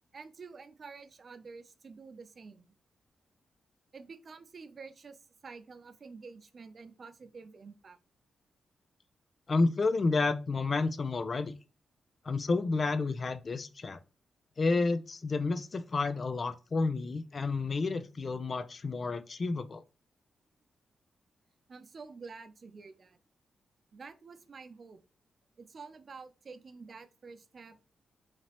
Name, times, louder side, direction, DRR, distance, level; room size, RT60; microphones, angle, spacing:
voice 1, 0.1-2.7 3.9-8.0 21.7-23.2 23.9-25.0 25.6-27.8, right 4 dB, 55° right, 9 dB, 0.6 m, -49 dB
voice 2, 9.5-11.5 12.2-14.0 14.6-19.8, left 3 dB, 50° left, 12 dB, 0.4 m, -30 dB
4.3 x 2.9 x 3.0 m, 0.32 s
cardioid pair, 60°, 0 cm